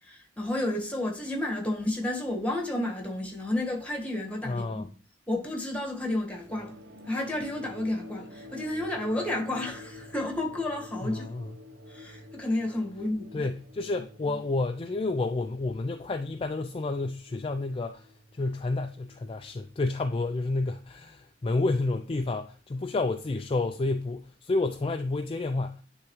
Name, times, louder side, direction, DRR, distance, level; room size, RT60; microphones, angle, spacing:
voice 1, 0.0-4.9 5.3-6.8 7.1-11.2 11.9-13.5, left 1 dB, 10° left, 1.6 m, -31 dB
voice 2, 4.4-4.8 11.0-11.5 13.3-18.1 18.3-25.8, left 2 dB, 30° left, 0.4 m, -30 dB
sound 1, 6.3-21.2, left 2 dB, 90° right, 0.7 m, -49 dB
10.5 x 3.5 x 3.1 m
head